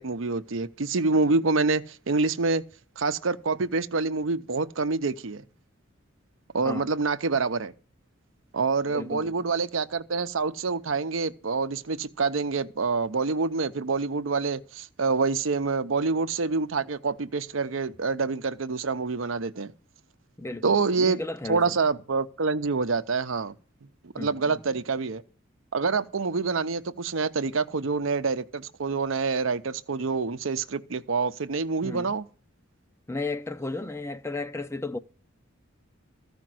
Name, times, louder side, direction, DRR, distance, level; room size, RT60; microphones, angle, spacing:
voice 1, 0.0-2.6 3.0-5.4 6.5-7.7 8.5-19.7 20.6-21.2 21.5-23.5 24.1-25.2 25.7-32.2, right 4 dB, 75° right, 0.7 m, -26 dB
voice 2, 8.9-9.5 20.4-21.8 24.2-24.8 31.8-32.1 33.1-35.0, left 2 dB, 15° left, 0.5 m, -34 dB
14.0 x 5.2 x 7.6 m
head